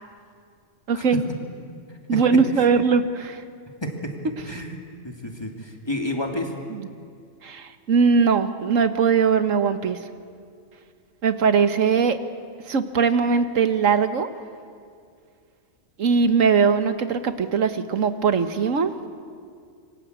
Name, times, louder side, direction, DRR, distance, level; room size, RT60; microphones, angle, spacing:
voice 1, 0.9-1.2 2.1-3.4 6.7-6.9 7.4-10.0 11.2-12.2 12.7-14.3 16.0-18.9, right 5 dB, 80° right, 10 dB, 1.6 m, -20 dB
voice 2, 3.8-4.1 4.4-4.8 5.0-6.5, left 1 dB, 20° left, 2 dB, 2.7 m, -30 dB
27.0 x 24.0 x 8.2 m, 2.2 s
omnidirectional pair, 1.3 m